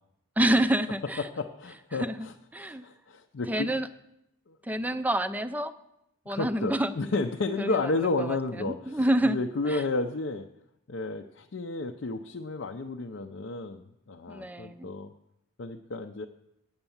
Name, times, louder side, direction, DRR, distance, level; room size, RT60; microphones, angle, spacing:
voice 1, 0.4-1.3 2.0-2.3 2.5-2.8 3.5-3.9 4.6-5.7 6.3-6.9 7.6-7.9 8.2-9.4 9.6-9.8 14.3-14.9, right 1 dB, 10° right, 11 dB, 0.4 m, -28 dB
voice 2, 1.2-3.8 4.5-4.6 6.3-10.5 10.9-15.1 15.6-16.3, left 3 dB, 60° left, 4 dB, 0.5 m, -32 dB
9.0 x 8.8 x 7.1 m, 0.83 s
head